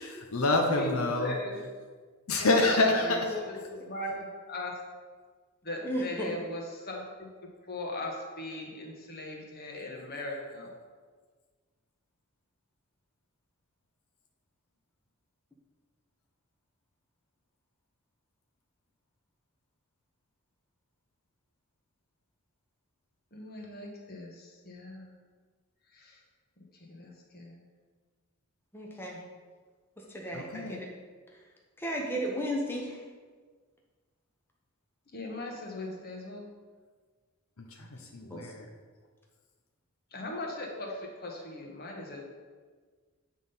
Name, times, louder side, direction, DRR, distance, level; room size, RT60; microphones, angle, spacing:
voice 1, 0.0-1.4 2.3-3.2 30.3-30.8 37.6-38.7, left 2 dB, 70° left, 2 dB, 0.8 m, -27 dB
voice 2, 0.8-1.6 2.6-4.7 5.6-7.3 7.6-10.7 23.3-25.1 25.9-26.2 26.6-26.7 26.9-27.6 35.1-36.5 40.1-42.2, left 2 dB, 45° left, 0 dB, 1.3 m, -39 dB
voice 3, 5.8-6.3 28.7-29.2 30.0-30.9 31.8-33.0 38.3-38.5, equal, 10° left, -2 dB, 0.8 m, -34 dB
8.4 x 3.8 x 5.5 m, 1.5 s
head